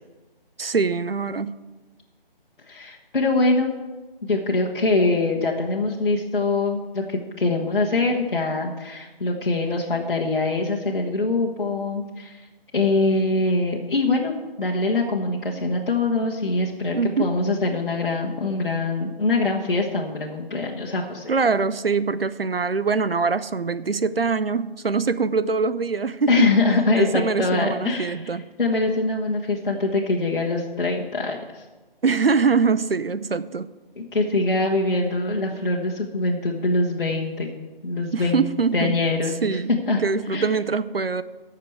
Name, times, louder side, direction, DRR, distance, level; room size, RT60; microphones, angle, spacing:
voice 1, 0.6-1.6 16.9-17.4 21.3-26.5 27.0-28.5 32.0-33.7 38.1-39.0 39.4-39.7 40.0-41.2, right 5 dB, 75° right, 14 dB, 0.7 m, -23 dB
voice 2, 2.7-3.7 4.3-12.4 12.7-21.3 26.3-28.1 28.6-31.6 34.0-37.5 37.8-38.4 38.7-39.6 39.9-40.0 40.3-40.4, left 3 dB, 55° left, -3 dB, 1.5 m, -23 dB
10.5 x 6.7 x 8.0 m, 1.2 s
figure-of-eight pair, 155°, 30 cm